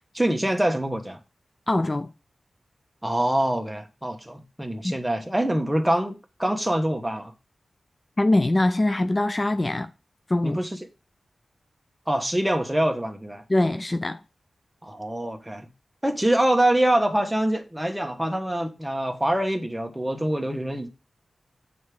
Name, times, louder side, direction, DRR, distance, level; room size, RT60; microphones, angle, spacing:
voice 1, 0.1-1.2 3.0-7.3 10.4-10.8 12.1-13.4 14.8-15.7 16.0-20.9, right 1 dB, 10° right, 1.2 m, -25 dB
voice 2, 1.7-2.1 4.8-4.9 8.2-9.9 10.3-10.6 13.5-14.2, left 1 dB, 35° left, 0.5 m, -23 dB
6.4 x 4.8 x 4.9 m
cardioid pair, 50°, 0 cm